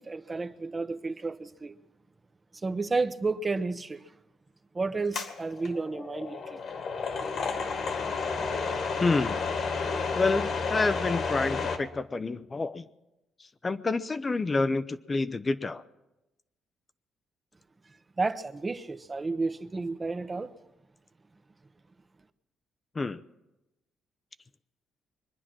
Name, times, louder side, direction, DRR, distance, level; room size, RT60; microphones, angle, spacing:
voice 1, 0.0-1.8 2.6-4.0 4.7-6.6 18.2-20.5, right 3 dB, 25° right, 0.8 m, -31 dB
sound 1, 5.1-11.8, left 4 dB, 60° left, 1.9 m, -31 dB
voice 2, 9.0-9.5 10.1-12.9 13.4-15.8 22.9-23.2, left 3 dB, 30° left, 0.6 m, -28 dB
23.0 x 10.0 x 6.1 m
cardioid pair, 90°, 0 cm